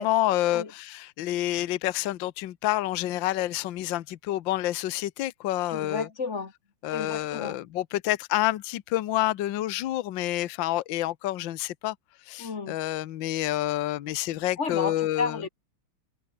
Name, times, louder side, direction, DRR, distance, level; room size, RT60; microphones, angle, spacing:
voice 1, 0.0-6.1 6.8-11.9 12.3-15.4, left 15 dB, 65° left, 1.5 m, -28 dB
voice 2, 5.7-6.5 6.9-7.6 12.4-12.8 14.6-15.5, left 4 dB, 35° left, 1.8 m, -32 dB
omnidirectional pair, 2.4 m